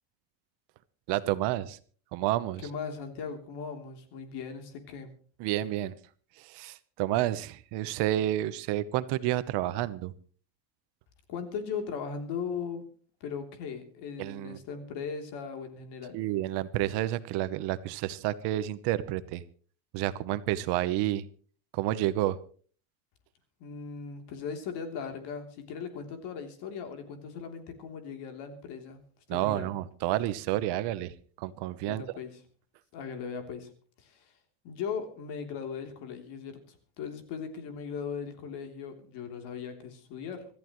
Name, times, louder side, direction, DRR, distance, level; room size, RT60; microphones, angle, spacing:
voice 1, 1.1-1.8 2.1-2.7 5.4-6.0 6.4-10.1 14.2-14.6 16.1-19.4 19.9-21.3 21.7-22.4 29.3-32.0, right 14 dB, 55° right, 14 dB, 1.0 m, -30 dB
voice 2, 2.6-5.1 11.3-12.8 13.2-16.2 23.6-29.0 29.3-29.7 31.9-32.4 32.9-33.7 34.0-34.3 34.6-40.5, left 6 dB, 55° left, 5 dB, 3.3 m, -38 dB
26.0 x 14.0 x 3.1 m, 0.43 s
cardioid pair, 180°, 48 cm